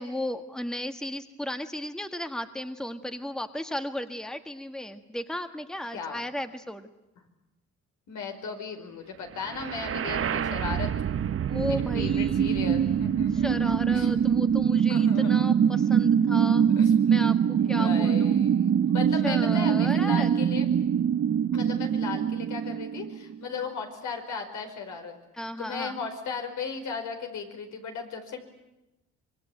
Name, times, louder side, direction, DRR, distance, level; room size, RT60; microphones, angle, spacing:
voice 1, 0.0-6.9 11.5-12.9 13.4-16.6 17.1-18.5 19.2-20.3 22.6-22.8 25.3-26.0, left 1 dB, ahead, 8 dB, 1.6 m, -35 dB
voice 2, 8.1-10.9 11.7-14.1 14.9-15.3 16.8-16.9 17.5-20.7 21.5-25.2 25.6-28.4, left 5 dB, 75° left, 4 dB, 5.1 m, -36 dB
sound 1, 9.5-23.4, right 8 dB, 45° right, 0.8 m, -24 dB
25.5 x 22.5 x 9.1 m, 0.95 s
cardioid pair, 90°, 30 cm